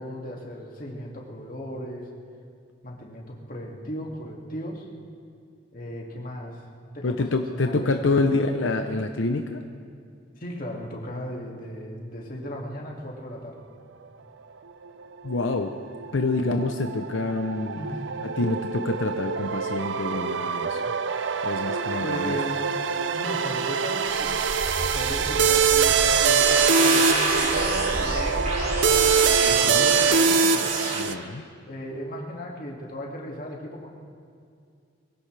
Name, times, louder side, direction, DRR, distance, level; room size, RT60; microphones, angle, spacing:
voice 1, 0.0-2.1 2.8-4.9 5.7-6.6 6.9-8.3 10.4-13.6 17.7-18.1 22.0-22.6 23.1-24.4 24.8-29.1 29.5-30.7 31.6-33.9, equal, 45° left, -2 dB, 2.3 m, -36 dB
voice 2, 7.0-9.6 15.2-15.7 16.1-17.8 18.4-20.8 21.4-22.4 29.5-29.9 30.9-31.5, left 3 dB, 85° left, 5 dB, 0.7 m, -27 dB
sound 1, 14.9-31.1, right 6 dB, 75° right, 0.6 m, -24 dB
sound 2, 23.5-31.0, right 1 dB, 35° right, 2.5 m, -29 dB
23.0 x 16.5 x 3.4 m, 2.3 s
head